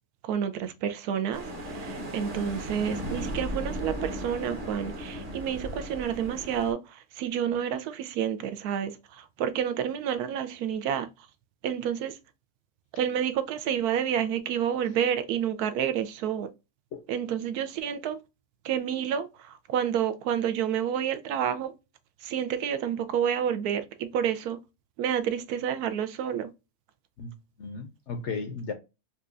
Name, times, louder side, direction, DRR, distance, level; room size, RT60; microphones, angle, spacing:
voice 1, 0.3-1.4 1.7-6.8 7.2-8.9 9.2-11.1 11.6-12.1 13.0-16.5 17.1-18.2 18.6-19.3 19.7-21.7 22.2-24.6 25.0-26.5, right 9 dB, 80° right, 1.1 m, -29 dB
sound 1, 1.3-6.7, equal, 30° right, 0.8 m, -36 dB
voice 2, 27.2-28.7, left 4 dB, 65° left, 0.7 m, -35 dB
4.3 x 2.3 x 2.4 m
omnidirectional pair, 1.6 m